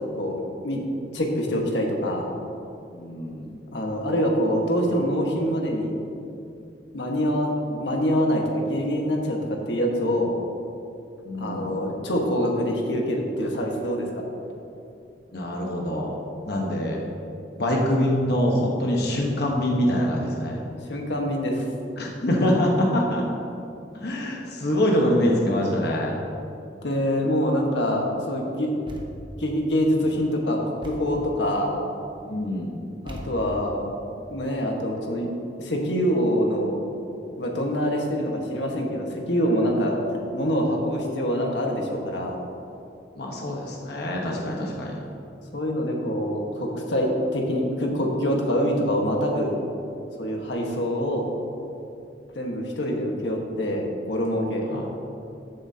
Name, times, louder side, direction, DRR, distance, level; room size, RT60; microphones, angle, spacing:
voice 1, 1.1-2.3 3.7-5.9 6.9-10.3 11.4-14.2 20.9-21.6 26.8-28.7 29.4-31.8 33.0-33.9 34.3-35.3 35.6-36.8 37.4-40.0 40.3-42.4 45.5-49.5 50.2-51.3 52.3-54.7, equal, 90° left, 0 dB, 1.4 m, -25 dB
voice 2, 2.9-3.5 11.2-11.7 15.3-16.2 16.5-17.0 17.5-20.6 22.0-23.3 23.9-26.1 32.3-32.7 43.2-45.0 54.7-54.9, left 1 dB, 65° left, -1 dB, 1.1 m, -24 dB
Thump thud, 28.9-29.4 30.8-31.3 33.1-33.7, equal, 30° right, 1.0 m, -38 dB
14.0 x 7.7 x 2.8 m, 2.7 s
head